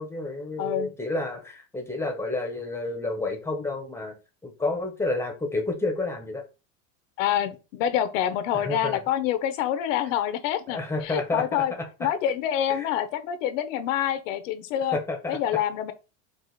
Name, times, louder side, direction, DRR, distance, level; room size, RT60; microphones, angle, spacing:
voice 1, 0.0-4.1 4.4-6.4 8.5-9.0 10.7-12.1 12.7-12.9 14.9-15.4, left 2 dB, 5° left, 0.8 m, -30 dB
voice 2, 0.6-0.9 7.2-11.7 12.0-15.0 15.3-15.9, left 10 dB, 70° left, 0.8 m, -26 dB
4.8 x 2.4 x 3.9 m
supercardioid pair, 150°, 39 cm